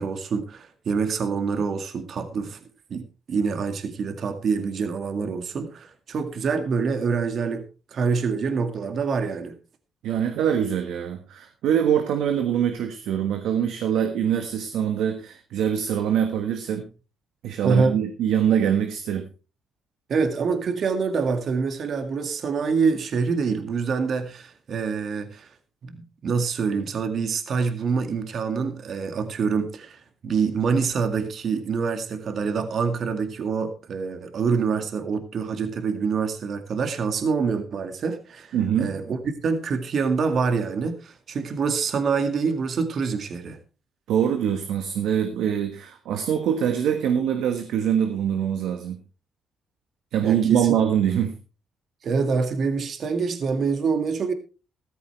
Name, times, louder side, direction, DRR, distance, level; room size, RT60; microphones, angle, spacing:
voice 1, 0.0-2.6 2.9-7.6 7.9-9.5 17.6-17.9 20.1-25.5 25.8-39.2 39.4-43.6 50.2-50.6 52.0-54.3, right 5 dB, 55° right, 2.1 m, -26 dB
voice 2, 10.0-16.9 17.4-19.3 38.5-39.0 44.1-49.0 50.1-51.4, right 9 dB, 85° right, 1.4 m, -24 dB
14.0 x 14.0 x 3.3 m
cardioid pair, 90°, 0 cm